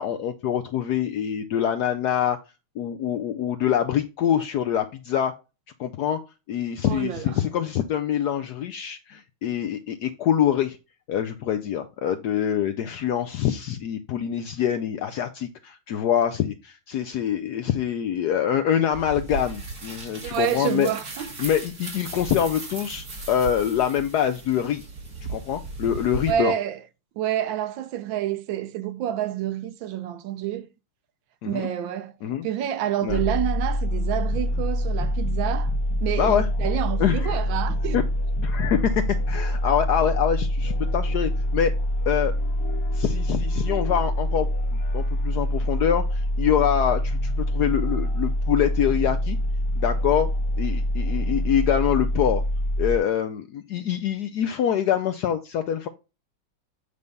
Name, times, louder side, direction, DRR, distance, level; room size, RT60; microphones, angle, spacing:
voice 1, 0.0-2.4 2.8-5.3 5.8-6.2 6.5-10.8 11.1-20.9 21.4-24.8 25.3-26.5 31.4-31.7 32.2-32.5 33.0-33.2 36.2-36.5 37.0-37.4 37.9-38.0 38.4-41.7 42.1-42.3 42.9-44.5 44.9-49.4 49.8-50.3 50.6-52.4 52.8-55.9, left 9 dB, 75° left, 0.9 m, -25 dB
voice 2, 6.9-7.3 20.2-21.3 26.3-26.8 27.2-30.7 31.5-32.1 32.4-35.7 36.0-38.0, right 11 dB, 75° right, 1.3 m, -28 dB
sound 1, 18.9-26.3, right 3 dB, 45° right, 2.7 m, -36 dB
sound 2, 33.1-53.0, left 1 dB, 35° left, 1.5 m, -25 dB
sound 3, 34.3-36.7 37.0-37.4 37.6-38.1 38.3-38.7 39.0-39.4, right 1 dB, ahead, 1.4 m, -39 dB
8.1 x 3.4 x 5.3 m
omnidirectional pair, 2.2 m